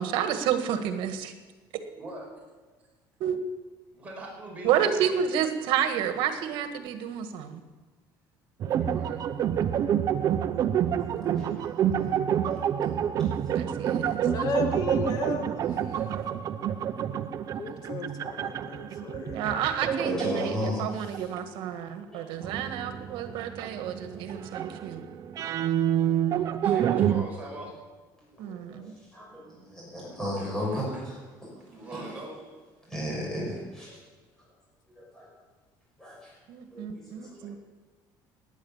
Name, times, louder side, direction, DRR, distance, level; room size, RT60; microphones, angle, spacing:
voice 1, 0.0-1.3 3.2-3.4 4.6-7.6 13.3-14.3 19.3-25.0 28.4-28.9 36.5-37.6, right 9 dB, 75° right, 8 dB, 1.7 m, -30 dB
voice 2, 1.9-2.3 3.9-5.1 8.8-9.2 26.3-27.8 30.4-30.8 31.7-32.4 37.1-37.6, right 1 dB, 15° right, -3 dB, 5.4 m, -42 dB
sound 1, 8.6-21.5 22.4-27.2, right 9 dB, 45° right, 0.7 m, -28 dB
voice 3, 11.1-12.4 13.5-13.8 20.0-21.3 22.1-23.3 24.0-24.2 24.6-24.7 25.9-26.1 28.5-31.5 31.8-32.1 32.9-34.0 35.0-35.3 36.0-36.3 36.7-37.0 37.3-37.6, left 1 dB, 5° left, -5 dB, 6.5 m, -36 dB
voice 4, 14.2-16.1 17.6-19.6, left 4 dB, 50° left, 5 dB, 2.1 m, -35 dB
18.0 x 10.0 x 7.3 m, 1.3 s
cardioid pair, 155°, 8 cm